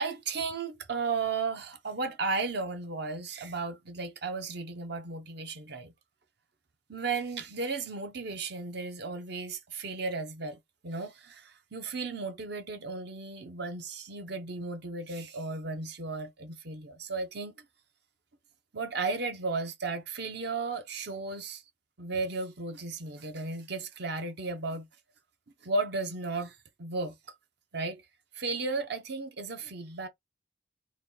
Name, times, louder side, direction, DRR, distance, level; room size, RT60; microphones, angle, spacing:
voice 1, 0.0-5.9 6.9-10.6 10.8-17.5 18.7-21.6 22.0-24.9 25.6-27.1 27.7-28.0 28.3-30.1, right 3 dB, 55° right, 0.7 m, -34 dB
4.0 x 2.3 x 3.8 m
head